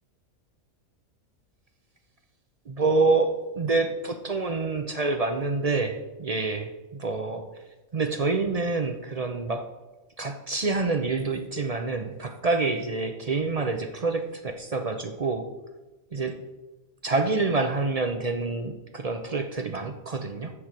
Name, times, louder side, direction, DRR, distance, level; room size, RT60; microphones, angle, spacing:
voice 1, 2.7-7.4 7.9-9.6 10.2-15.5 16.1-16.3 17.0-20.5, right 3 dB, 45° right, 6 dB, 0.5 m, -27 dB
7.9 x 6.3 x 7.4 m, 1.1 s
omnidirectional pair, 1.5 m